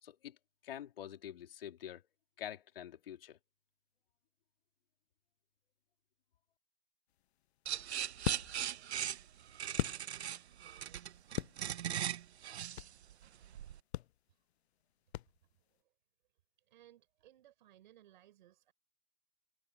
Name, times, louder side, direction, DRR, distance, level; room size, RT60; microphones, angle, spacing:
voice 1, 0.0-0.4 0.6-2.1 2.4-3.4, left 10 dB, 60° left, 3.9 m, -46 dB
sound 1, 7.1-10.6 10.9-13.1 13.4-13.6 13.9-15.7, left 13 dB, 80° left, 0.5 m, -42 dB
sound 2, 7.7-13.8, right 10 dB, 85° right, 1.1 m, -39 dB
voice 2, 10.5-11.5 13.1-13.2 14.3-14.4 15.2-15.3 15.6-15.9 16.6-18.7, right 13 dB, 50° right, 6.5 m, -65 dB
hypercardioid pair, 170°, 32 cm